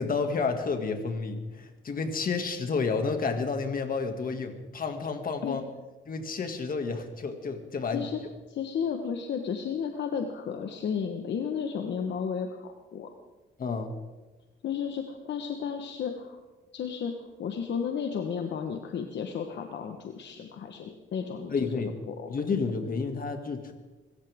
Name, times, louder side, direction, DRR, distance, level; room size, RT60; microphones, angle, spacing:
voice 1, 0.0-5.6 6.1-8.1 13.6-14.0 21.5-22.0 22.3-23.7, left 4 dB, 45° left, 5 dB, 2.4 m, -30 dB
voice 2, 7.9-8.2 8.5-13.1 14.6-16.4 16.7-17.1 17.4-21.5 22.1-22.3, left 7 dB, 65° left, 4 dB, 1.4 m, -33 dB
24.5 x 14.0 x 3.7 m, 1.2 s
cardioid pair, 90°, 20 cm